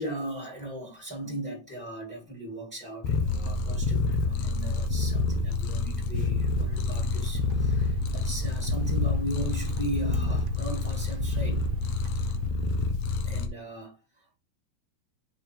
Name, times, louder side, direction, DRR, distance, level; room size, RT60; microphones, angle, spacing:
voice 1, 0.0-11.6 13.2-14.4, right 1 dB, 10° left, 0.7 m, -38 dB
Purr, 3.0-13.5, left 3 dB, 90° left, 1.5 m, -28 dB
sound 1, 6.5-12.5, right 10 dB, 80° right, 2.4 m, -39 dB
8.7 x 3.2 x 4.5 m
omnidirectional pair, 4.5 m